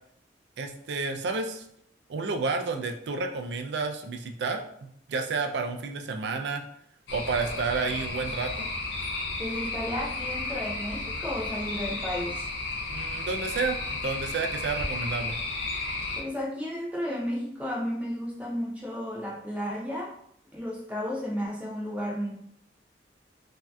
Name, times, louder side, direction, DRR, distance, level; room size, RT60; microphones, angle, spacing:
voice 1, 0.6-1.7 2.1-4.6 5.1-6.6 7.1-8.7 12.9-15.4, right 4 dB, 65° right, 5 dB, 0.3 m, -30 dB
sound 1, 7.1-16.2, left 2 dB, 75° left, 0.5 m, -33 dB
voice 2, 9.4-12.5 16.2-20.1 20.5-22.3, equal, 10° right, -4 dB, 0.5 m, -33 dB
3.2 x 2.7 x 2.2 m, 0.70 s
head